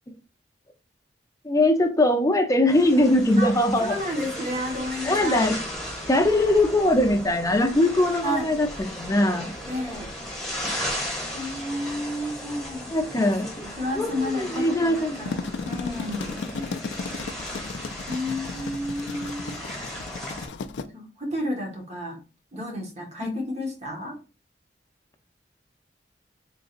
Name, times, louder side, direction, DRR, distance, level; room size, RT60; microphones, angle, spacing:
voice 1, 1.4-4.0 5.1-5.6 6.1-9.6 12.9-13.5 14.0-15.2 16.7-16.8 23.2-23.4, left 1 dB, 20° left, 4 dB, 0.6 m, -21 dB
sound 1, 2.7-20.5, equal, ahead, 1.4 m, -36 dB
voice 2, 3.8-5.5 8.2-8.6 9.6-10.1 11.3-16.4 18.1-19.5 20.9-22.2 22.5-24.2, left 1 dB, 40° right, 1 dB, 1.3 m, -31 dB
sound 2, 15.0-20.8, left 4 dB, 85° left, 0.4 m, -35 dB
3.9 x 3.7 x 2.5 m, 0.32 s
head